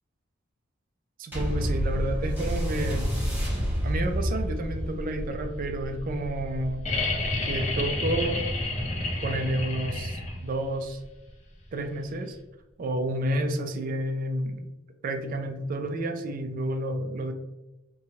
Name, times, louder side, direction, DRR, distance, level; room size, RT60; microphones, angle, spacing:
voice 1, 1.2-3.1 3.8-6.8 7.4-8.5 9.2-11.0 11.7-12.4 12.8-14.6 15.0-17.3, right 1 dB, 45° right, 6 dB, 0.3 m, -30 dB
sound 1, 1.3-10.1 10.8-10.9, equal, 10° right, 0.8 m, -30 dB
sound 2, 6.8-10.6 12.3-12.4, left 2 dB, 35° left, 0.5 m, -29 dB
2.8 x 2.3 x 2.7 m, 1.0 s
head